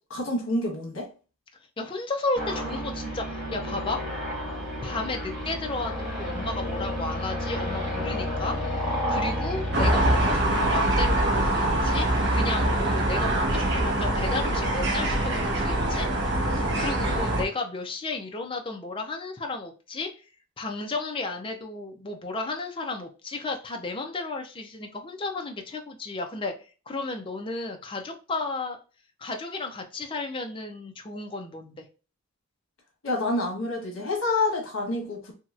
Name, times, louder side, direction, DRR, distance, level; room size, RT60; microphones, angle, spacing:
voice 1, 0.1-1.1 33.0-35.3, left 2 dB, 75° left, 1.1 m, -28 dB
voice 2, 1.8-4.0 4.8-8.6 9.1-20.1 20.6-26.5 26.9-28.8 29.2-31.8, left 3 dB, 25° left, 0.4 m, -33 dB
sound 1, 2.3-10.3, equal, ahead, 1.4 m, -31 dB
sound 2, 9.7-17.4, right 1 dB, 55° right, 0.7 m, -24 dB
2.9 x 2.8 x 2.4 m
head